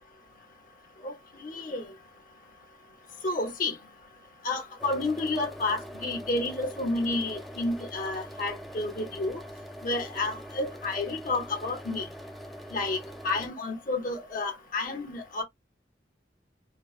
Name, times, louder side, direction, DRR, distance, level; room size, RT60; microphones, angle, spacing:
voice 1, 1.0-1.9 3.2-3.8 4.4-9.4 9.8-12.1 12.7-15.4, left 2 dB, 50° left, 1.0 m, -30 dB
sound 1, 4.8-13.5, equal, ahead, 0.5 m, -43 dB
4.5 x 2.2 x 2.4 m
head